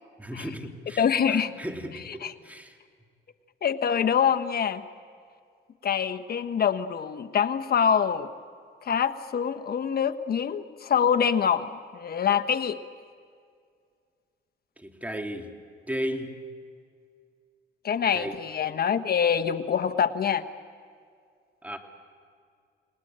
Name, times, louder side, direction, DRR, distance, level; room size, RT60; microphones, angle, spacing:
voice 1, 0.2-2.7 14.8-15.5 15.9-16.4 18.1-18.4 21.6-21.8, equal, 5° right, 4 dB, 2.8 m, -35 dB
voice 2, 1.0-1.5 1.9-2.3 3.6-4.8 5.8-8.3 8.8-11.7 11.9-12.8 17.8-20.4, left 7 dB, 50° left, 9 dB, 1.4 m, -25 dB
29.5 x 19.5 x 8.9 m, 2.2 s
cardioid pair, 90°, 20 cm